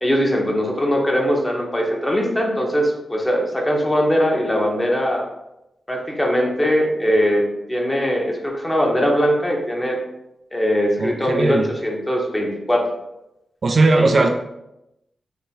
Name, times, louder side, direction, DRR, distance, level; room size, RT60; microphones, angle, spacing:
voice 1, 0.0-5.2 5.9-7.4 7.7-10.0 10.5-12.8 13.9-14.1, equal, 15° left, 0 dB, 1.0 m, -20 dB
voice 2, 11.0-11.7 13.6-14.3, right 3 dB, 50° right, 4 dB, 0.4 m, -17 dB
3.5 x 3.3 x 4.2 m, 0.89 s
wide cardioid pair, 90°, 0 cm